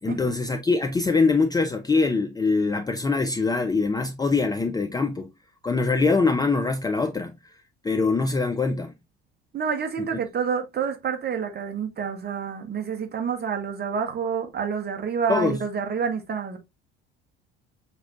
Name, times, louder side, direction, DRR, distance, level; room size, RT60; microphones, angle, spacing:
voice 1, 0.0-5.3 5.6-7.3 7.8-8.9 15.3-15.6, left 4 dB, 15° left, 0.5 m, -23 dB
voice 2, 9.5-16.6, right 6 dB, 35° right, 1.3 m, -28 dB
6.7 x 2.3 x 2.5 m
figure-of-eight pair, 60°, 30 cm